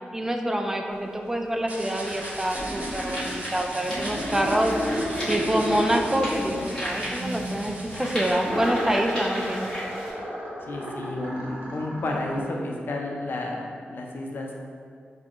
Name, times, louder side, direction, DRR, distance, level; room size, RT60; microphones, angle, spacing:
voice 1, 0.1-4.7 5.3-9.7, right 1 dB, 10° right, 3 dB, 0.3 m, -26 dB
sound 1, 0.9-1.0 1.6-10.1, equal, 15° left, 1.4 m, -36 dB
sound 2, 1.7-8.3, right 1 dB, 40° right, 0.7 m, -41 dB
sound 3, 2.5-3.5 3.8-8.1 8.4-12.4, equal, 70° right, 0.9 m, -32 dB
voice 2, 10.6-14.6, left 2 dB, 65° left, 0 dB, 0.5 m, -31 dB
6.1 x 2.3 x 3.0 m, 2.2 s
wide cardioid pair, 125°, 4 cm